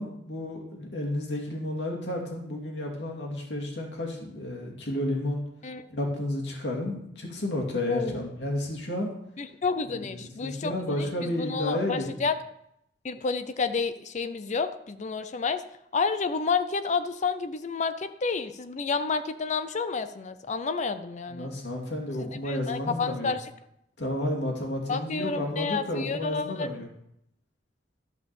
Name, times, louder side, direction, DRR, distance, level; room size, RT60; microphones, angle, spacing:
voice 1, 0.0-5.4 5.9-9.1 9.9-12.1 21.3-23.3 24.0-26.9, left 1 dB, 70° left, 0 dB, 2.5 m, -31 dB
voice 2, 9.4-12.4 13.0-15.6 15.9-21.5 22.2-23.5 24.9-26.7, left 4 dB, 40° left, 11 dB, 0.5 m, -30 dB
12.0 x 5.3 x 6.9 m, 0.76 s
head